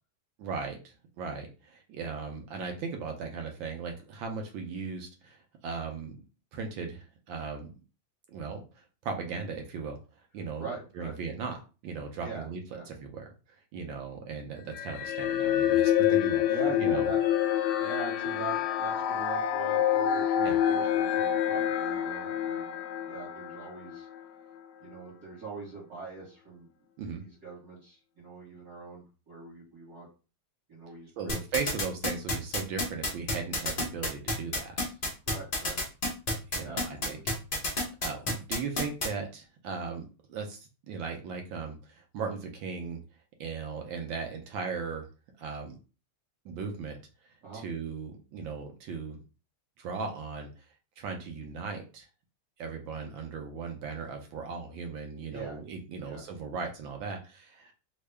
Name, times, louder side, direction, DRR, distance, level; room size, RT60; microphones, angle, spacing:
voice 1, 0.4-6.2 6.5-7.7 8.3-10.0 10.3-10.7 10.9-11.6 11.8-12.6 12.9-13.3 13.7-16.4 16.8-17.1 20.4-20.6 27.0-27.2 31.2-34.9 36.5-37.2 38.0-43.0 43.4-45.1 45.4-45.8 46.4-47.0 47.5-49.2 49.8-50.5 51.0-52.1 52.6-57.7, right 5 dB, 70° right, 3 dB, 1.3 m, -37 dB
voice 2, 10.6-11.2 12.2-12.5 12.7-12.9 16.5-17.2 17.7-22.7 23.1-24.1 24.8-26.7 27.2-30.1 30.7-31.4 35.3-35.8 36.6-37.2 47.4-47.6 55.3-55.6 56.0-56.2, right 4 dB, 50° right, -7 dB, 1.7 m, -42 dB
sound 1, 14.7-24.2, left 10 dB, 75° left, 1.3 m, -27 dB
sound 2, 31.3-39.1, left 2 dB, 50° left, 0.6 m, -29 dB
3.5 x 2.2 x 3.3 m, 0.33 s
omnidirectional pair, 2.4 m